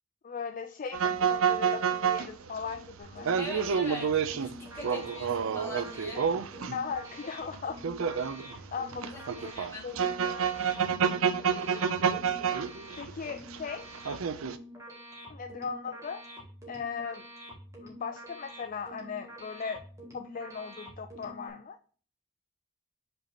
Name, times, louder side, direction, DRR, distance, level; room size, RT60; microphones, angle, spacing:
voice 1, 0.2-3.3 6.5-7.8 8.2-8.3 8.7-10.5 13.0-13.9 15.3-16.3 16.7-17.2 17.8-19.8 20.1-21.8, left 6 dB, 40° left, 7 dB, 0.4 m, -38 dB
sound 1, 0.9-7.0 7.5-13.6 13.9-14.5, right 7 dB, 70° right, 0.5 m, -29 dB
sound 2, 3.0-21.5, equal, 15° right, 1.7 m, -47 dB
voice 2, 3.4-6.3 9.0-9.3 9.5-9.9, left 1 dB, 10° left, -1 dB, 1.7 m, -41 dB
5.3 x 4.3 x 4.3 m, 0.43 s
head